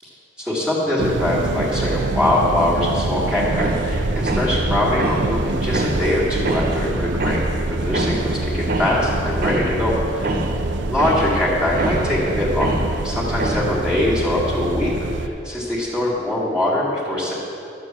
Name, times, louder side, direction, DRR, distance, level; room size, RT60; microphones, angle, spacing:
voice 1, 0.4-7.4 7.7-10.3 10.8-12.7 13.0-14.9 15.2-17.3, left 1 dB, 5° right, -7 dB, 2.1 m, -22 dB
sound 1, 1.0-15.3, right 2 dB, 80° right, 0.6 m, -25 dB
sound 2, 3.5-13.7, right 1 dB, 55° right, 1.1 m, -27 dB
12.0 x 7.2 x 7.5 m, 2.7 s
head